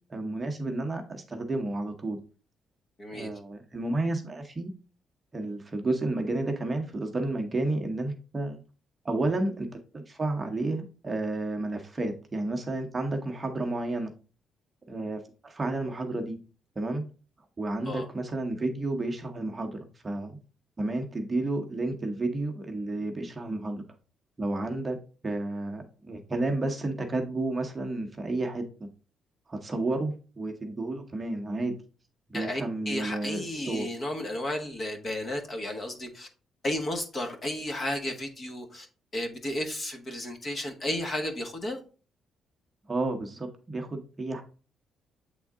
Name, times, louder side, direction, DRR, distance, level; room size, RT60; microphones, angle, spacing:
voice 1, 0.1-2.2 3.1-4.7 5.3-8.6 9.0-14.1 14.9-16.4 16.8-17.1 17.6-20.4 20.8-23.8 24.4-25.0 25.2-28.9 29.5-31.7 32.3-33.9 42.9-44.4, right 2 dB, 25° right, 0.9 m, -31 dB
voice 2, 3.0-3.3 17.8-18.1 32.3-36.3 36.6-38.9 39.1-41.8, left 1 dB, 35° left, 1.2 m, -33 dB
7.7 x 3.6 x 3.6 m
cardioid pair, 130°, 0 cm